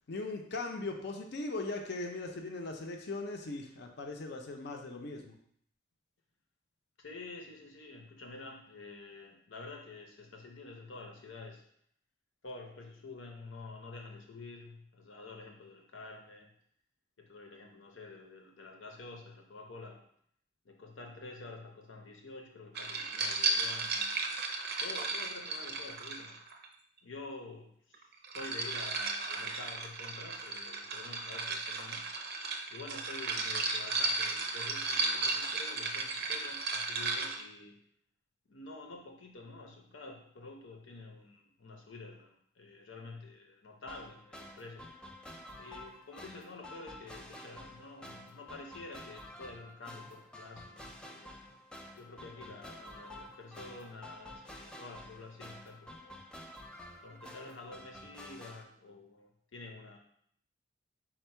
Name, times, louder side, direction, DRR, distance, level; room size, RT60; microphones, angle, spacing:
voice 1, 0.1-5.4, left 2 dB, 60° left, 3 dB, 0.5 m, -39 dB
voice 2, 7.0-11.6 12.4-16.5 17.2-20.0 20.6-24.2 24.8-26.4 27.0-32.1 32.7-37.8 38.5-44.9 45.6-51.4 52.0-56.2 57.0-60.0, left 3 dB, 90° left, 2 dB, 0.8 m, -48 dB
sound 1, 22.7-26.7 27.9-37.4, right 3 dB, 60° right, 0.5 m, -35 dB
sound 2, 43.9-58.6, left 1 dB, 5° left, 0.3 m, -50 dB
4.4 x 2.2 x 4.3 m, 0.66 s
head